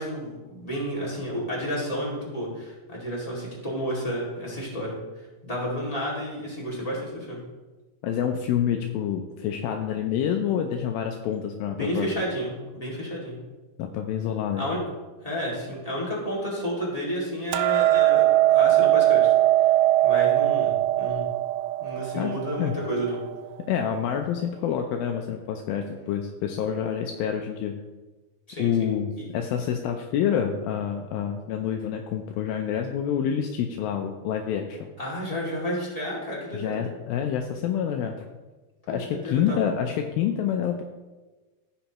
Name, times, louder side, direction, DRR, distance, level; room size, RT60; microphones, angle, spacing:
voice 1, 0.0-7.4 11.8-13.3 14.6-14.8 15.2-19.3 20.0-21.2 21.8-23.2 28.5-28.9 35.0-36.8 38.9-39.6, equal, 15° left, -6 dB, 1.3 m, -31 dB
voice 2, 8.0-12.1 13.8-14.6 22.2-22.8 23.7-27.8 28.6-34.9 36.5-38.3 38.9-40.8, left 8 dB, 80° left, 4 dB, 2.3 m, -27 dB
Hammer, 17.5-23.8, right 15 dB, 85° right, 2.4 m, -21 dB
15.0 x 5.8 x 3.0 m, 1.2 s
omnidirectional pair, 4.4 m